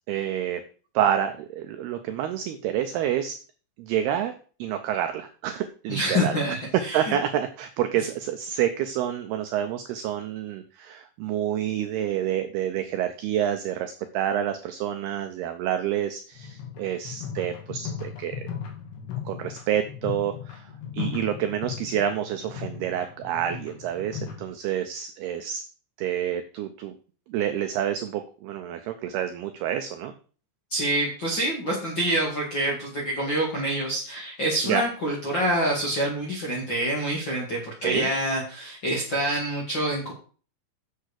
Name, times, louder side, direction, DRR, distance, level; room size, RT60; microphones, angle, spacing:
voice 1, 0.1-0.6 0.9-3.4 3.8-4.3 4.6-6.4 6.9-18.4 19.3-25.6 26.0-27.0 27.3-30.1 34.6-34.8 37.8-38.1, right 10 dB, 85° right, 8 dB, 2.3 m, -28 dB
voice 2, 5.9-7.1 30.7-40.1, right 1 dB, 45° left, -3 dB, 1.6 m, -26 dB
sound 1, 16.3-24.4, left 7 dB, 60° left, 3.8 m, -37 dB
8.4 x 7.2 x 6.5 m, 0.40 s
omnidirectional pair, 5.6 m